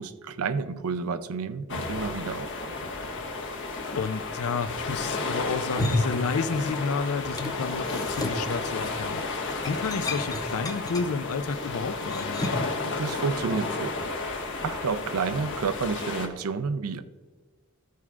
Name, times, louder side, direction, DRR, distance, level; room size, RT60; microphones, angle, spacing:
voice 1, 0.0-2.9 12.8-17.0, right 5 dB, 85° right, 0.5 m, -31 dB
sound 1, 1.7-16.3, left 3 dB, 60° left, 1.2 m, -32 dB
voice 2, 4.0-12.5, left 5 dB, 80° left, 0.5 m, -31 dB
sound 2, 5.7-6.9 7.2-12.8, left 1 dB, 20° left, 0.8 m, -33 dB
14.0 x 4.7 x 3.6 m
head